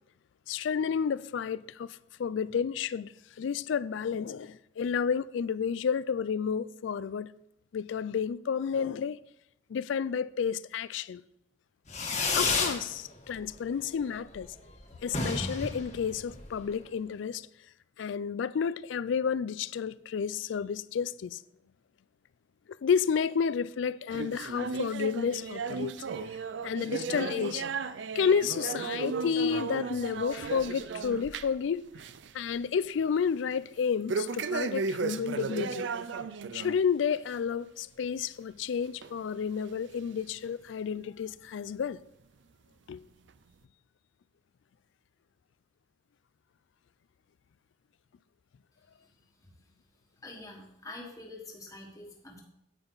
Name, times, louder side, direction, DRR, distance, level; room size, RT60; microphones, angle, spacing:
voice 1, 0.5-7.3 7.7-9.2 9.7-11.2 12.3-14.5 15.0-17.5 18.0-21.4 22.8-25.9 26.6-27.7 28.1-31.9 32.3-35.9 36.5-42.0 42.9-43.0, left 6 dB, 70° left, 0.3 m, -31 dB
Fireworks, 11.9-12.8 13.2-13.7 14.0-14.1 14.3-14.4 14.7-14.8 15.0-16.7, left 4 dB, 35° left, 1.4 m, -30 dB
sound 1, 24.1-31.7 31.9-32.3 32.7-32.8 34.1-36.8 37.2-37.4 38.0-38.1 39.0-39.1 39.9-40.0, right 4 dB, 65° right, 0.4 m, -35 dB
voice 2, 50.2-52.4, left 2 dB, 15° left, 1.5 m, -46 dB
9.1 x 8.9 x 3.9 m
head